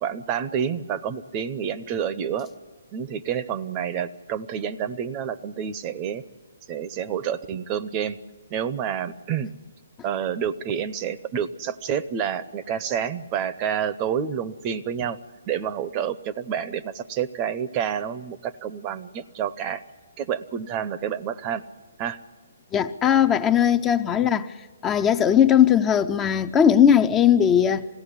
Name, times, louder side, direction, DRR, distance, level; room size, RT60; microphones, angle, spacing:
voice 1, 0.0-2.5 2.9-6.2 6.7-8.2 8.5-9.5 10.0-15.2 15.5-19.8 20.2-21.6 22.0-22.2 24.2-24.5, right 8 dB, 30° right, 0.7 m, -29 dB
voice 2, 22.7-24.5 24.8-27.9, left 9 dB, 20° left, 0.6 m, -18 dB
21.5 x 16.0 x 9.9 m
figure-of-eight pair, 135°, 0 cm